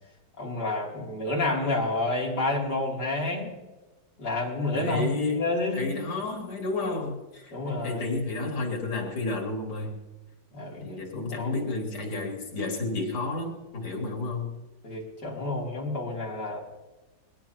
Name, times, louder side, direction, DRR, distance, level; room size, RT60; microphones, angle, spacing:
voice 1, 0.4-3.5 4.2-5.9 7.5-8.0 10.5-11.0 11.4-11.6 14.8-16.6, left 2 dB, 50° left, -3 dB, 3.9 m, -29 dB
voice 2, 4.7-5.5 5.7-10.0 10.8-14.6, left 3 dB, 90° left, 1 dB, 3.6 m, -31 dB
21.5 x 17.5 x 3.0 m, 1.1 s
omnidirectional pair, 2.3 m